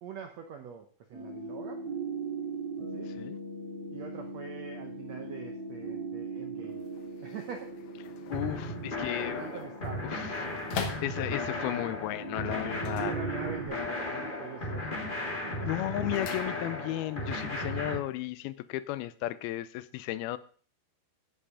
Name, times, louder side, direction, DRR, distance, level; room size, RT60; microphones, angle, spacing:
voice 1, 0.0-1.8 2.9-3.1 3.9-6.9 7.2-7.7 9.3-10.0 12.6-15.8, right 6 dB, 70° right, 1.6 m, -44 dB
sound 1, 1.1-13.7, right 4 dB, 45° right, 3.1 m, -40 dB
sound 2, 6.7-11.7 12.7-13.9 14.1-14.7 15.0-17.1 17.4-17.5, left 7 dB, 65° left, 1.9 m, -44 dB
voice 2, 8.3-9.4 10.0-10.8 11.0-13.1 15.7-20.4, left 15 dB, 90° left, 2.6 m, -34 dB
sound 3, 8.3-18.0, left 1 dB, 25° left, 1.1 m, -35 dB
16.0 x 5.6 x 4.9 m
omnidirectional pair, 4.3 m